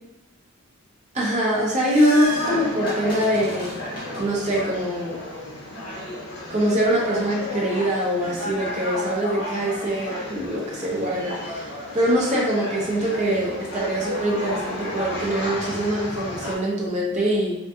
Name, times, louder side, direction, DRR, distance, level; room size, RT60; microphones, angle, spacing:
voice 1, 1.1-3.7 4.2-5.2 6.5-11.7 11.9-17.6, equal, 30° right, -4 dB, 0.5 m, -23 dB
sound 1, 1.5-4.6, equal, 20° left, 0.9 m, -35 dB
sound 2, 2.3-16.5, left 1 dB, 50° left, 0.6 m, -32 dB
2.6 x 2.5 x 2.3 m, 0.93 s
head